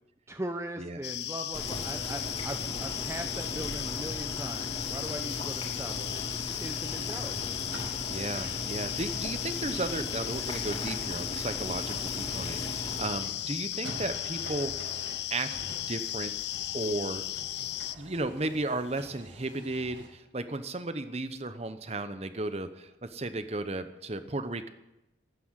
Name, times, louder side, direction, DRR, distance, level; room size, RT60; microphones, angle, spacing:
voice 1, 0.3-7.5, right 1 dB, 15° right, 6 dB, 0.7 m, -40 dB
sound 1, 1.0-18.0, left 14 dB, 60° left, 0.5 m, -36 dB
Boiling, 1.5-13.3, left 1 dB, 30° left, 3.0 m, -38 dB
sound 2, 7.5-20.1, right 1 dB, 80° right, 5.5 m, -48 dB
voice 2, 8.1-14.7 15.3-15.5 15.9-16.3 16.7-17.2 17.6-17.7 18.0-24.7, right 2 dB, 35° right, 11 dB, 1.0 m, -34 dB
13.0 x 9.8 x 9.1 m, 0.92 s
head